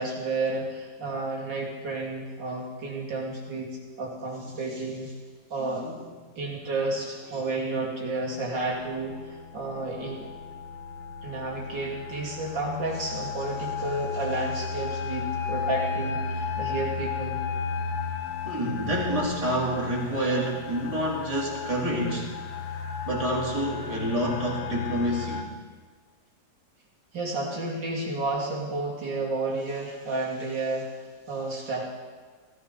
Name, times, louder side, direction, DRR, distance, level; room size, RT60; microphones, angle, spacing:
voice 1, 0.0-5.2 5.5-5.9 6.4-10.2 11.2-17.4 27.1-31.8, right 2 dB, 75° right, -3 dB, 3.7 m, -31 dB
voice 2, 5.6-6.0 7.3-7.4 18.4-22.3 23.0-25.5, equal, 20° right, -4 dB, 3.3 m, -28 dB
sound 1, 8.3-25.4, left 5 dB, 90° left, 1.7 m, -34 dB
17.0 x 14.0 x 5.5 m, 1.5 s
omnidirectional pair, 2.0 m